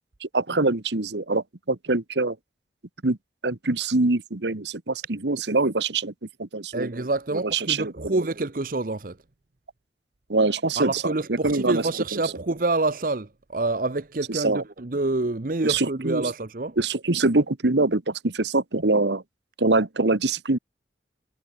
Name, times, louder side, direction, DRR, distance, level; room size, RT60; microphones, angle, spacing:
voice 1, 0.2-2.4 3.0-3.2 3.4-6.1 6.4-6.9 7.5-8.2 10.3-11.1 11.4-11.8 14.3-14.6 15.6-16.2 16.8-19.2 19.6-20.6, right 3 dB, 75° right, 1.4 m, -24 dB
voice 2, 6.7-9.2 10.8-16.8, right 2 dB, 50° right, 0.9 m, -27 dB
head